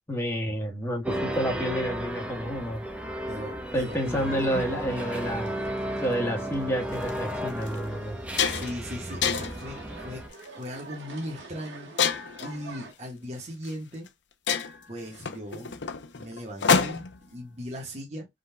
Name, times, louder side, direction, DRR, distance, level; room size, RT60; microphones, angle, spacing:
voice 1, 0.1-2.8 3.7-5.5 6.0-8.2, equal, 15° left, 1.5 m, -29 dB
sound 1, 1.0-10.3, equal, 5° right, 0.8 m, -34 dB
voice 2, 3.3-4.3 8.4-11.9 12.4-14.1 14.9-15.7 16.1-18.3, equal, 35° right, 1.3 m, -38 dB
sound 2, 3.7-12.9, right 2 dB, 90° right, 1.7 m, -46 dB
sound 3, 6.9-7.1 7.7-7.8 8.1-8.8 9.2-9.7 10.3-10.6 12.0-12.5 13.6-13.7 14.1-14.2 14.5-17.2, left 6 dB, 75° left, 0.7 m, -27 dB
5.1 x 3.9 x 2.2 m
head